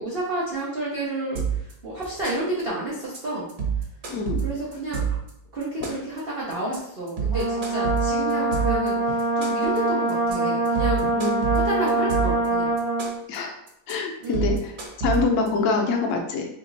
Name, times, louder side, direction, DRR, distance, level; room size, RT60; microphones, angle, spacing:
voice 1, 0.0-3.5 4.4-5.0 5.5-11.1 11.5-12.8 14.2-14.6, right 2 dB, 85° right, -5 dB, 0.5 m, -30 dB
sound 1, 1.4-1.7 2.0-2.6 2.9-3.2 3.5-5.3 5.6-6.2 6.5-6.8 7.1-8.9 9.2-9.8 10.1-10.3 10.7-12.5 12.8-13.4 13.7-13.9 14.2-15.5, right 7 dB, 60° right, 1.4 m, -27 dB
voice 2, 4.1-4.4 11.2-11.4 13.3-13.5 13.9-14.7 15.0-16.5, left 4 dB, 65° left, 2 dB, 0.8 m, -25 dB
Brass instrument, 7.3-13.1, right 2 dB, 20° left, 0.7 m, -24 dB
3.4 x 2.9 x 3.9 m, 0.81 s
omnidirectional pair, 2.1 m